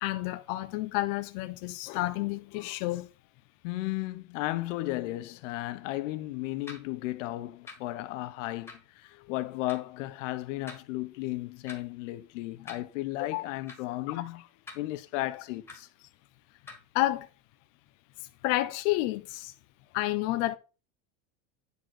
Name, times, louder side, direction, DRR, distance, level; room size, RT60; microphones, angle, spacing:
voice 1, 0.0-3.1 13.3-13.4 14.1-14.2 16.9-17.3 18.4-19.5 19.9-20.6, left 17 dB, 35° left, 0.4 m, -30 dB
voice 2, 3.6-14.4 14.7-15.9, left 17 dB, 65° left, 0.9 m, -34 dB
sound 1, 6.7-6.8 7.7-7.8 8.7-8.8 9.7-9.8 10.7-10.8 11.7-11.8 12.7-12.8 13.7-13.8 14.7-14.8 15.7-15.8 16.7-16.8, left 3 dB, 5° left, 1.4 m, -44 dB
9.6 x 3.9 x 6.3 m
supercardioid pair, 175°, 40 cm